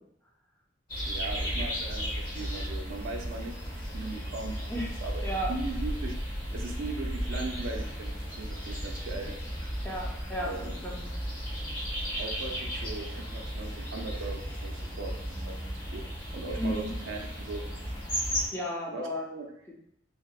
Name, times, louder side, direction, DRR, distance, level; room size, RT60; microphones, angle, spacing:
sound 1, 0.9-18.5, equal, 50° left, 1.0 m, -35 dB
voice 1, 1.1-5.2 5.5-6.2 6.5-9.3 10.5-10.8 12.2-15.6 15.9-16.0 16.3-17.6 18.9-19.5, right 3 dB, 90° right, 3 dB, 0.4 m, -39 dB
voice 2, 9.8-11.1 16.6-16.9 18.5-19.3, equal, 10° left, -3 dB, 0.4 m, -34 dB
2.8 x 2.0 x 2.3 m, 0.74 s
head